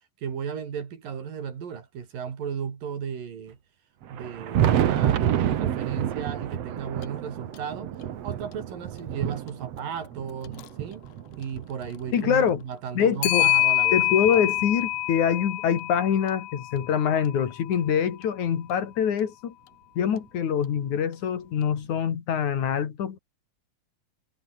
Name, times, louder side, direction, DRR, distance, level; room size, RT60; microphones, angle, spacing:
voice 1, 0.2-3.6 4.1-7.9 8.2-11.0 11.4-14.0, right 7 dB, 85° right, 4.9 m, -35 dB
Thunder, 4.0-12.6 13.2-14.9 16.1-16.2 16.7-16.8 18.7-18.8 20.2-20.3 21.8-21.9, right 10 dB, 60° right, 2.2 m, -29 dB
Clock, 7.0-7.1 7.5-7.6 10.4-10.7 13.2-17.5, left 17 dB, 85° left, 2.5 m, -26 dB
voice 2, 12.1-12.6 13.0-13.5 13.9-19.5 20.0-23.2, left 8 dB, 60° left, 3.5 m, -24 dB
omnidirectional pair, 3.8 m